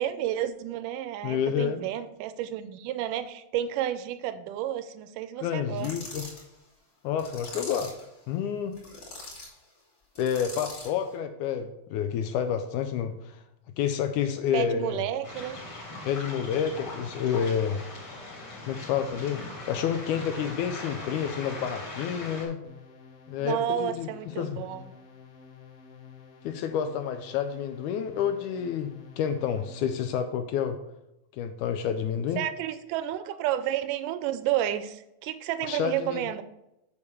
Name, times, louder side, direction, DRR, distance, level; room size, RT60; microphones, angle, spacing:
voice 1, 0.0-6.0 14.5-15.6 23.4-24.9 32.4-36.4, right 11 dB, 80° right, 12 dB, 2.0 m, -31 dB
voice 2, 1.2-1.8 5.4-6.3 7.0-7.9 8.3-8.8 10.2-13.4 13.8-15.0 16.1-17.8 18.7-22.6 23.3-24.1 24.4-24.6 26.4-30.8 31.4-32.4 35.6-36.3, left 8 dB, 80° left, 8 dB, 1.8 m, -29 dB
sound 1, 5.8-6.4 7.2-8.0 8.7-9.5 10.1-11.0, left 2 dB, 25° left, 3.4 m, -42 dB
Waves surf, 15.2-22.4, left 2 dB, 40° left, 3.6 m, -40 dB
sound 2, 22.6-30.2, left 7 dB, 55° left, 1.7 m, -50 dB
7.2 x 4.8 x 6.8 m, 0.87 s
omnidirectional pair, 3.9 m